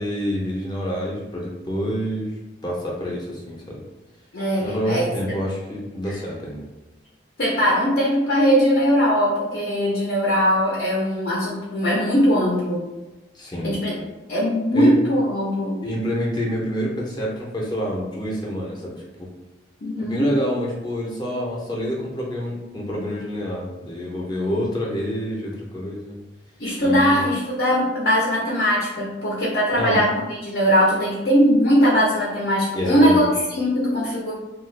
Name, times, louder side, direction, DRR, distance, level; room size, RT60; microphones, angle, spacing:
voice 1, 0.0-2.3 2.6-3.8 4.6-6.6 13.3-13.7 14.7-15.0 15.8-19.3 20.0-26.2 26.8-27.2 29.7-30.0 32.7-33.3, equal, 25° left, -3 dB, 0.5 m, -27 dB
voice 2, 4.3-5.1 7.4-12.9 13.6-14.0 14.3-15.8 19.8-20.3 26.6-34.3, equal, 65° left, -5 dB, 0.6 m, -20 dB
2.7 x 2.3 x 3.1 m, 1.0 s
head